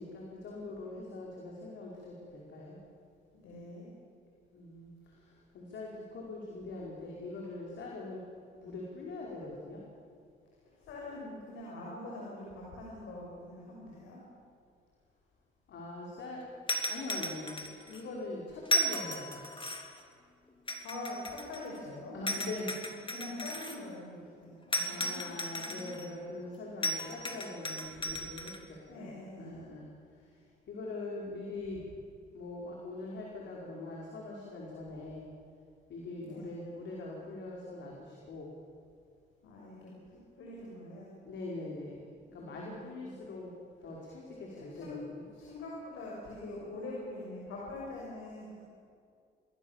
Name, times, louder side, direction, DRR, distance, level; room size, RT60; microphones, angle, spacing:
voice 1, 0.0-2.8 4.5-8.2 8.6-9.8 15.7-16.6 16.9-19.4 22.1-22.8 24.8-29.1 29.4-29.9 30.2-30.4 30.7-31.9 32.3-35.2 35.9-38.5 41.2-42.0 42.3-43.5 43.8-45.3, left 2 dB, 65° left, -3 dB, 5.2 m, -42 dB
voice 2, 3.3-3.9 10.6-14.2 20.8-22.9 23.1-26.0 28.9-29.6 36.2-36.5 39.4-41.1 42.4-43.1 44.5-45.0 45.3-48.6, left 2 dB, 85° left, -3 dB, 6.6 m, -44 dB
sound 1, 16.7-18.0 18.7-20.0 20.7-21.8 22.3-23.8 24.7-26.1 26.8-28.6, left 1 dB, 25° left, 3.3 m, -35 dB
28.5 x 21.0 x 7.4 m, 2.3 s
cardioid pair, 90°, 20 cm